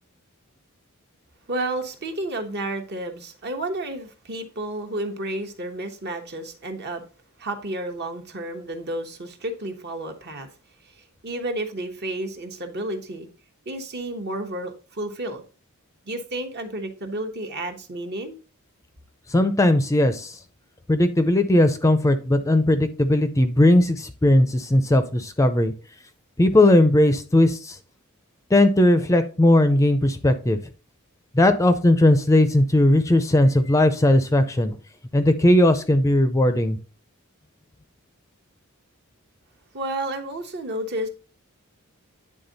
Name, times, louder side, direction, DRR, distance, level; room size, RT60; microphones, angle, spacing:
voice 1, 1.5-7.0 7.4-10.5 10.8-13.3 13.7-15.4 16.1-18.4 39.7-41.1, right 1 dB, 50° right, 1.1 m, -31 dB
voice 2, 19.3-20.4 20.9-25.7 26.4-27.8 28.5-30.6 31.3-34.8 35.1-36.8, left 1 dB, 15° left, 0.5 m, -18 dB
9.7 x 3.7 x 4.0 m
head